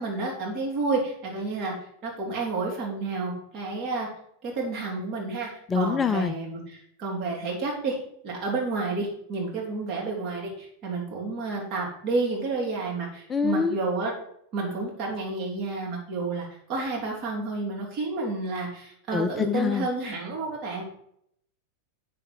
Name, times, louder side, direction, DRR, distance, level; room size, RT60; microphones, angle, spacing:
voice 1, 0.0-1.7 2.0-4.1 4.4-8.0 8.2-14.1 14.5-20.8, right 3 dB, 35° right, -2 dB, 3.3 m, -30 dB
voice 2, 5.7-6.3 13.3-13.8 19.1-19.9, left 6 dB, 20° left, 10 dB, 0.4 m, -25 dB
7.6 x 6.6 x 4.5 m, 0.70 s
figure-of-eight pair, 90°, 0 cm